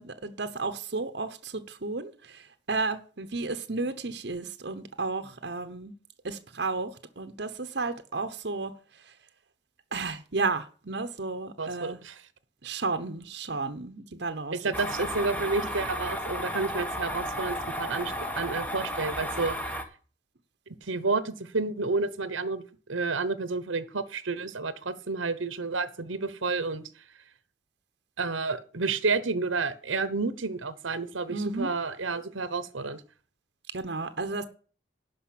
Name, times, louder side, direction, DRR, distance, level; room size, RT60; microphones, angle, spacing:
voice 1, 0.0-5.9 6.2-8.7 9.9-12.0 12.6-14.6 15.4-15.5 31.3-31.7 33.7-34.4, right 3 dB, 60° right, 1.0 m, -33 dB
voice 2, 11.6-12.2 14.5-19.8 20.9-22.6 22.9-26.8 28.2-33.0, right 3 dB, 85° right, 1.1 m, -30 dB
sound 1, 14.7-19.8, equal, 10° left, 1.2 m, -33 dB
12.0 x 5.3 x 8.6 m
head